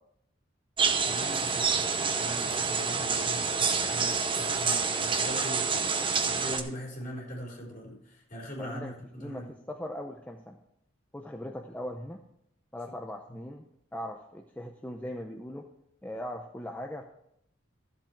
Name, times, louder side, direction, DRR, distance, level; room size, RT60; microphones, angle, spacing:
sound 1, 0.8-6.6, right 5 dB, 25° right, 0.8 m, -28 dB
voice 1, 1.0-9.4 13.3-13.4, equal, 40° left, -2 dB, 4.3 m, -41 dB
voice 2, 8.6-10.6 11.1-12.2 12.7-13.6 13.9-15.7 16.0-17.0, left 1 dB, 10° left, 2 dB, 0.6 m, -39 dB
13.0 x 7.6 x 4.6 m, 0.74 s
head